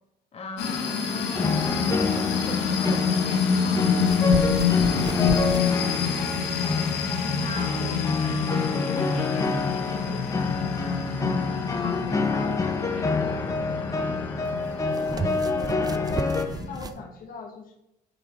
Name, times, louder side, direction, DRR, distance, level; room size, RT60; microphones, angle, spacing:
voice 1, 0.3-4.6 7.1-11.1 11.7-13.5 13.8-14.3 15.0-15.9, left 3 dB, 35° left, 3 dB, 1.6 m, -41 dB
sound 1, 0.6-16.9, left 6 dB, 85° left, 1.7 m, -27 dB
sound 2, 1.3-16.5, left 4 dB, 20° left, 1.1 m, -28 dB
sound 3, 4.0-17.0, right 5 dB, 25° right, 0.5 m, -37 dB
voice 2, 7.7-8.3 12.3-12.6 15.5-16.0 16.6-17.7, left 5 dB, 55° left, 1 dB, 1.3 m, -40 dB
7.6 x 6.4 x 4.4 m, 0.85 s
cardioid pair, 110°, 17 cm